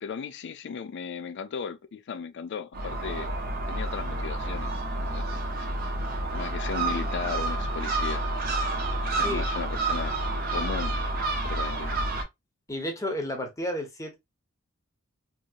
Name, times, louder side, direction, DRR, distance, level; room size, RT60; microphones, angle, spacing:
voice 1, 0.0-3.3 3.7-4.7 5.0-5.2 6.3-8.2 9.1-10.2 10.5-10.9 11.4-12.1, left 6 dB, 55° left, 0.4 m, -36 dB
Gull seagull, 2.7-12.2, right 2 dB, 45° right, 0.7 m, -29 dB
voice 2, 12.7-14.2, left 1 dB, 15° left, 0.8 m, -32 dB
2.8 x 2.7 x 2.4 m
head